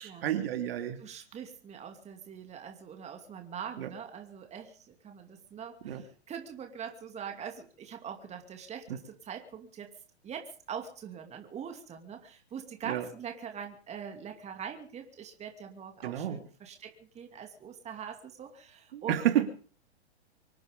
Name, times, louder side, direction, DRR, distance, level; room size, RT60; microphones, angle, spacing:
voice 1, 0.0-1.0 3.8-3.9 5.8-6.0 12.9-13.0 16.0-16.4 18.9-19.6, right 11 dB, 60° right, 6 dB, 2.9 m, -30 dB
voice 2, 1.0-9.9 10.2-19.2, right 7 dB, 20° right, 4 dB, 2.6 m, -43 dB
25.5 x 9.6 x 5.2 m, 0.42 s
hypercardioid pair, 120°, 34 cm